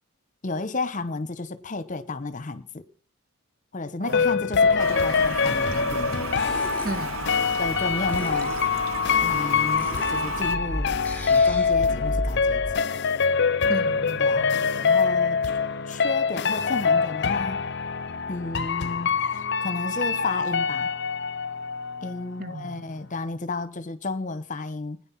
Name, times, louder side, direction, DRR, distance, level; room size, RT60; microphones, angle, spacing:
voice 1, 0.4-2.9 3.7-6.2 7.6-8.6 9.2-10.9 11.3-12.8 14.2-15.5 15.8-17.6 18.3-20.9 22.0-25.0, left 3 dB, 35° left, 1.0 m, -32 dB
sound 1, 4.1-22.7 23.0-23.1, left 5 dB, 50° left, 0.7 m, -24 dB
sound 2, 4.6-12.7, equal, 5° left, 2.6 m, -36 dB
Toilet flush, 4.8-10.6, right 5 dB, 70° right, 1.2 m, -34 dB
voice 2, 6.8-7.3 13.7-14.7 22.4-22.8, right 2 dB, 40° right, 1.7 m, -35 dB
20.5 x 10.0 x 5.8 m
head